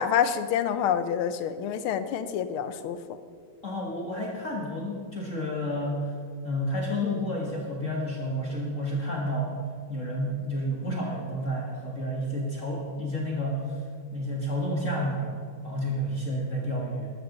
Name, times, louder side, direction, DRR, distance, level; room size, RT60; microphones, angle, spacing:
voice 1, 0.0-3.0, left 8 dB, 85° left, 11 dB, 1.6 m, -27 dB
voice 2, 3.6-6.2 6.4-9.6 9.9-13.8 14.1-15.3 15.6-17.1, equal, 40° left, -2 dB, 1.6 m, -30 dB
13.5 x 13.0 x 3.9 m, 2.1 s
omnidirectional pair, 2.3 m